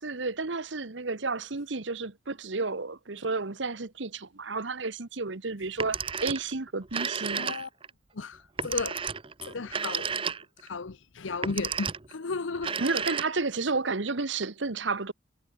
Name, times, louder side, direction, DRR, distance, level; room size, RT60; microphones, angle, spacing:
voice 1, 0.0-7.5 12.8-15.1, right 3 dB, 70° right, 1.2 m, -31 dB
Telephone, 5.7-6.5 6.8-7.9 8.6-10.7 11.3-12.1 12.6-13.6, right 6 dB, 25° right, 0.7 m, -32 dB
voice 2, 7.4-7.7 8.1-9.0 9.5-10.1 10.6-12.7, left 4 dB, 80° left, 0.8 m, -34 dB
head